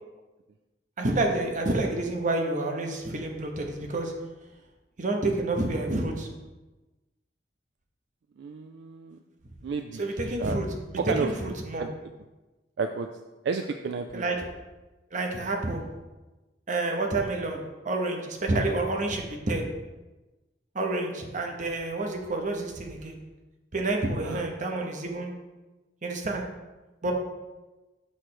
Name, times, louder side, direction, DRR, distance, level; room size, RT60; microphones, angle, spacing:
voice 1, 1.0-4.1 5.0-6.3 10.0-11.9 14.1-14.4 15.1-15.8 16.7-19.6 20.7-23.2 23.7-25.3 26.0-26.4 27.0-27.1, right 2 dB, 45° right, 2 dB, 0.9 m, -29 dB
voice 2, 8.4-9.2 9.6-10.6 11.0-11.9 12.8-13.1 13.4-14.3 24.2-24.4, right 4 dB, 70° right, 6 dB, 0.3 m, -32 dB
6.4 x 3.2 x 5.9 m, 1.1 s
head